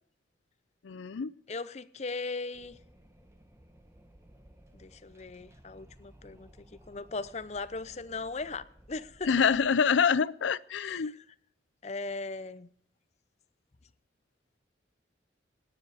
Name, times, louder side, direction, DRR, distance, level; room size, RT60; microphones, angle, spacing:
voice 1, 0.8-1.3 9.2-11.1, left 6 dB, 90° left, 0.5 m, -26 dB
voice 2, 1.5-2.8 4.7-6.5 6.9-9.3 10.8-11.1 11.8-12.7, left 3 dB, 35° left, 0.6 m, -38 dB
Wind, 2.5-9.8, equal, 15° right, 1.3 m, -57 dB
17.0 x 10.0 x 4.9 m
head